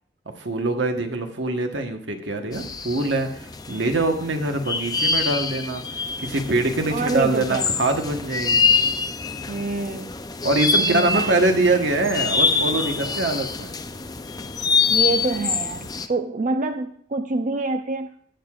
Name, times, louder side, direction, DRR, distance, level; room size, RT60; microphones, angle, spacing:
voice 1, 0.4-5.8 6.2-8.7 10.4-13.7, right 2 dB, 75° right, 5 dB, 1.2 m, -23 dB
sound 1, 2.5-16.1, left 5 dB, 20° left, 0.5 m, -25 dB
voice 2, 6.9-7.7 9.5-10.1 10.8-11.4 11.7-11.8 14.9-18.1, right 3 dB, 45° right, 7 dB, 0.5 m, -26 dB
18.0 x 6.6 x 2.4 m, 0.62 s
head